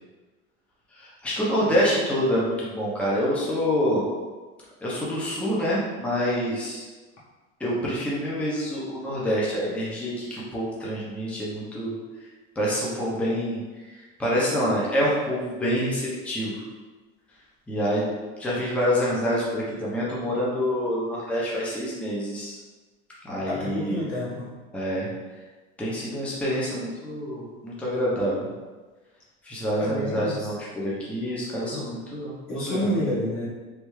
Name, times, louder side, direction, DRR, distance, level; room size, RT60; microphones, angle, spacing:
voice 1, 0.9-4.0 4.8-6.8 7.6-12.0 12.6-13.6 13.9-16.6 17.7-18.0 18.4-22.6 23.2-24.0 24.7-25.1 25.8-28.5 29.4-32.3 32.7-33.0, equal, 5° left, -6 dB, 0.7 m, -27 dB
voice 2, 23.4-24.5 29.8-30.3 31.7-31.9 32.5-33.5, left 1 dB, 40° left, -6 dB, 1.3 m, -29 dB
3.4 x 2.6 x 3.1 m, 1.3 s
supercardioid pair, 120°, 35 cm